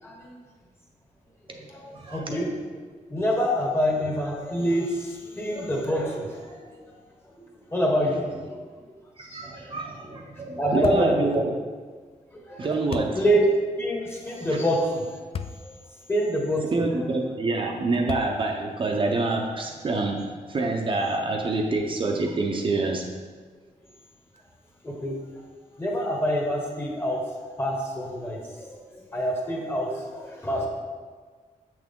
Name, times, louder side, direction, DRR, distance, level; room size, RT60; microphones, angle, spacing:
voice 1, 0.0-0.3 1.7-2.5 3.1-6.8 7.4-8.6 9.2-9.8 10.6-11.4 12.3-12.7 13.1-13.5 13.8-15.2 15.6-15.7 16.1-16.6 24.8-25.2 25.8-30.7, equal, 15° left, -1 dB, 1.3 m, -27 dB
voice 2, 1.5-2.2 9.2-11.5 12.6-13.2 14.5-14.6 16.7-23.1, right 3 dB, 40° right, 0 dB, 0.7 m, -27 dB
sound 1, 10.8-11.2 12.9-13.2 15.3-15.6 16.2-16.3 18.1-18.6, left 7 dB, 45° left, 0.4 m, -34 dB
7.5 x 6.1 x 3.7 m, 1.5 s
wide cardioid pair, 155°, 14 cm